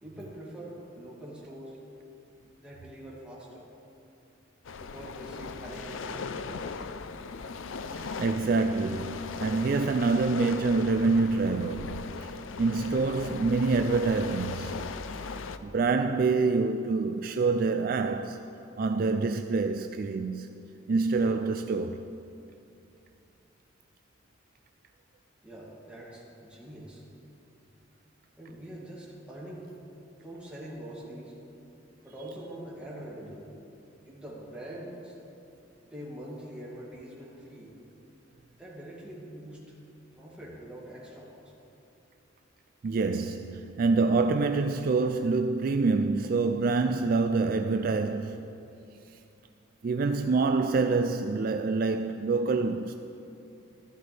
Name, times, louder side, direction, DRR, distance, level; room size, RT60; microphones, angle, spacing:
voice 1, 0.0-1.8 2.6-3.7 4.7-6.9 25.4-27.0 28.4-29.7 30.2-31.3 32.0-33.4 34.0-35.2 35.9-37.7 38.6-39.6 40.1-41.5, right 1 dB, 5° right, 2.3 m, -44 dB
sound 1, 4.6-15.6, left 4 dB, 85° left, 0.5 m, -38 dB
voice 2, 8.0-14.9 15.6-18.4 18.8-22.0 42.8-48.5 49.8-52.9, right 3 dB, 45° right, 0.3 m, -26 dB
14.5 x 13.0 x 3.4 m
head